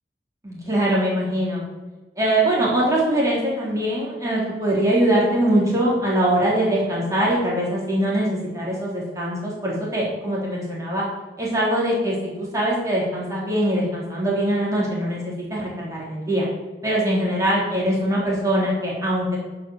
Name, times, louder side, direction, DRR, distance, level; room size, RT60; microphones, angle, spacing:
voice 1, 0.4-1.6 2.2-11.0 11.4-16.5 16.8-19.4, right 1 dB, 20° right, -5 dB, 3.4 m, -22 dB
10.5 x 5.2 x 7.2 m, 1.2 s
head